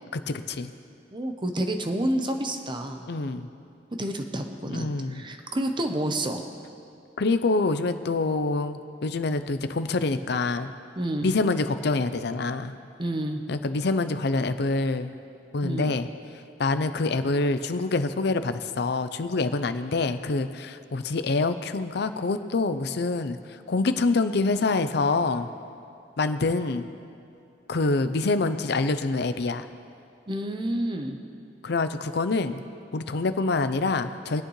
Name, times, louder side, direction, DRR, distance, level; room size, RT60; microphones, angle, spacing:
voice 1, 0.1-0.7 3.1-3.5 4.7-5.2 7.2-10.7 11.2-12.7 13.5-15.1 15.5-16.1 16.6-23.4 23.7-25.5 26.2-26.8 27.7-29.7 31.6-32.6 32.9-34.4, left 3 dB, 65° left, 10 dB, 0.6 m, -26 dB
voice 2, 1.1-3.1 4.0-6.4 11.0-11.3 13.0-13.4 15.6-16.0 30.3-31.2, right 1 dB, 25° right, 5 dB, 0.8 m, -29 dB
23.0 x 8.8 x 3.2 m, 2.6 s
head